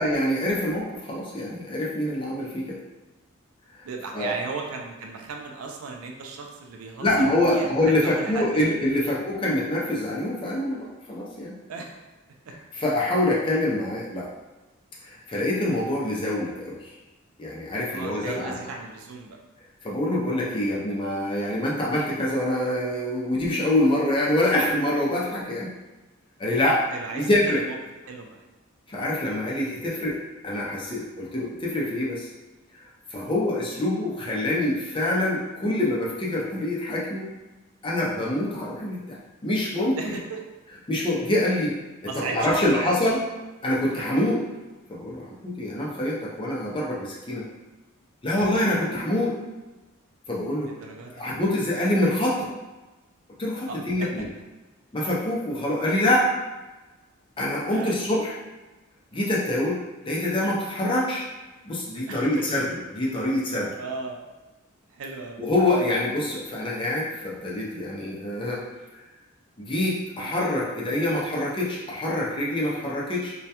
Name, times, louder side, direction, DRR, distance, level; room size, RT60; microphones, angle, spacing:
voice 1, 0.0-2.8 4.1-4.3 7.0-11.6 12.8-14.3 15.0-16.9 17.4-18.6 19.8-25.7 26.4-26.8 27.1-27.6 28.9-30.2 30.4-32.3 33.1-37.3 37.8-40.0 40.9-41.7 42.2-43.2 43.6-44.4 44.9-47.5 48.2-49.4 50.3-50.7 51.2-52.5 53.4-54.3 54.9-56.3 57.4-58.4 59.1-59.8 60.0-61.3 61.6-63.8 65.4-68.6 69.6-73.3, left 1 dB, 25° left, -4 dB, 0.4 m, -25 dB
voice 2, 3.8-8.6 9.0-9.2 11.7-12.0 12.5-12.6 17.9-19.4 26.9-27.8 28.1-28.4 29.6-29.8 40.0-40.4 42.1-43.1 50.7-51.2 53.7-54.2 57.7-58.0 62.1-62.5 63.8-64.2 64.9-65.4, right 3 dB, 80° right, 2 dB, 0.4 m, -36 dB
2.2 x 2.1 x 2.8 m, 1.2 s
head